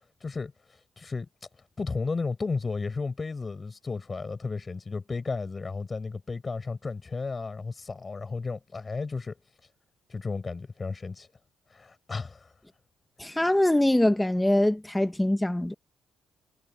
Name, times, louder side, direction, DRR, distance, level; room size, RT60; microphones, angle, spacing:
voice 1, 0.2-1.3 1.8-9.4 10.1-11.3 11.7-12.5, left 4 dB, 30° left, 6.8 m, -33 dB
voice 2, 13.2-15.7, left 1 dB, 10° left, 1.6 m, -23 dB
cardioid pair, 90°, 0 cm